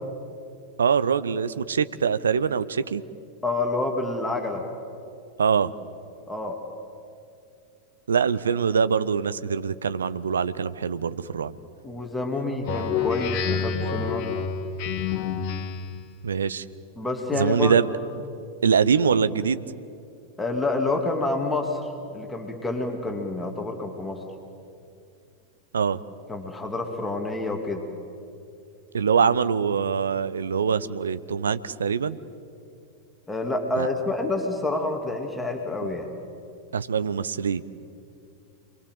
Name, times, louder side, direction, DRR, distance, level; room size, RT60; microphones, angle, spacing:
voice 1, 0.8-3.0 5.4-5.7 8.1-11.5 16.2-16.6 17.3-17.9 18.6-19.6 25.7-26.0 28.9-32.2 33.8-33.9 36.7-37.6, right 6 dB, 70° right, 14 dB, 0.8 m, -23 dB
voice 2, 3.4-4.7 6.3-6.6 11.8-14.3 17.0-17.8 20.4-24.2 26.3-27.8 33.3-36.1, left 2 dB, 10° left, 2 dB, 2.6 m, -28 dB
Speech synthesizer, 12.6-16.0, left 6 dB, 45° left, 1.8 m, -28 dB
28.0 x 22.0 x 7.8 m, 2.5 s
figure-of-eight pair, 90°, 0 cm